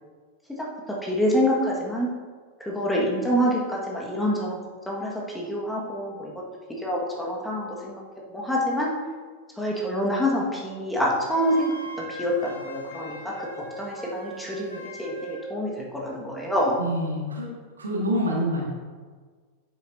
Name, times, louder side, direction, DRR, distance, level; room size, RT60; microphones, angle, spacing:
voice 1, 1.0-2.1 2.6-4.6 4.9-6.3 6.7-8.0 8.3-8.9 9.6-13.5 13.8-16.8, equal, 5° left, -3 dB, 1.7 m, -26 dB
Wind instrument woodwind instrument, 11.3-15.5, right 2 dB, 80° left, 1.6 m, -39 dB
voice 2, 16.8-17.5 17.8-18.6, equal, 70° right, -2 dB, 1.8 m, -26 dB
9.1 x 7.9 x 2.7 m, 1.5 s
figure-of-eight pair, 90°, 0 cm